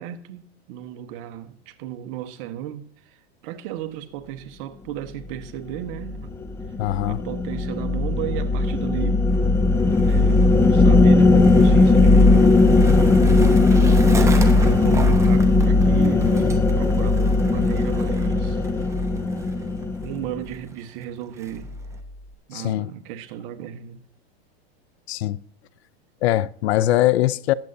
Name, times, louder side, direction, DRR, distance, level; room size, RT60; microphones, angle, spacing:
voice 1, 0.0-2.9 3.4-6.3 7.0-9.3 9.9-10.4 10.7-12.6 13.6-18.6 20.0-21.7 22.5-24.0, right 12 dB, 55° right, 1.3 m, -35 dB
sound 1, 5.9-20.4, left 3 dB, 10° left, 0.6 m, -17 dB
voice 2, 6.8-7.2 22.5-22.9 25.1-25.4 26.2-27.5, left 14 dB, 75° left, 0.6 m, -21 dB
Skateboard, 9.3-22.0, right 3 dB, 10° right, 1.1 m, -37 dB
20.5 x 8.0 x 2.7 m
supercardioid pair, 130°, 32 cm